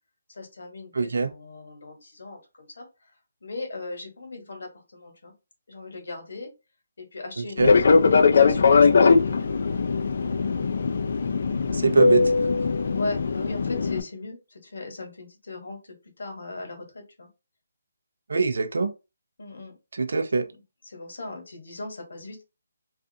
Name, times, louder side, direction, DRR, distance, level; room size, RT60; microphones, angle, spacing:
voice 1, 0.3-2.9 3.4-5.3 5.7-6.5 7.0-9.6 12.9-17.3 19.4-19.7 20.4-20.5 20.8-22.4, left 3 dB, 70° left, 1.1 m, -38 dB
voice 2, 0.9-1.3 7.4-7.7 11.7-12.2 18.3-18.9 19.9-20.4, right 4 dB, 70° right, 0.5 m, -23 dB
Fixed-wing aircraft airplane, 7.6-14.0, left 4 dB, 50° left, 0.3 m, -20 dB
2.4 x 2.4 x 2.7 m
hypercardioid pair, 175°, 0 cm